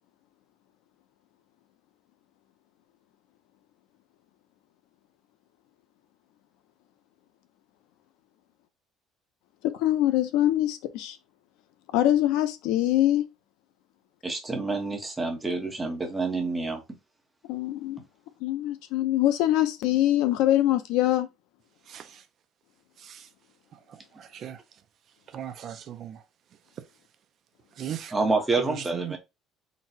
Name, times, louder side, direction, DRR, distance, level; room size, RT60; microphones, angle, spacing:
voice 1, 9.6-11.2 11.9-13.2 17.5-18.0 18.4-21.3, left 13 dB, 85° left, 0.6 m, -23 dB
voice 2, 14.2-16.8 28.1-29.2, right 3 dB, 10° right, 0.8 m, -28 dB
voice 3, 21.9-22.2 23.0-23.3 23.9-24.6 25.3-26.2 27.8-28.1 28.6-29.2, right 10 dB, 40° right, 0.4 m, -38 dB
3.9 x 2.1 x 4.2 m
cardioid pair, 175°, 0 cm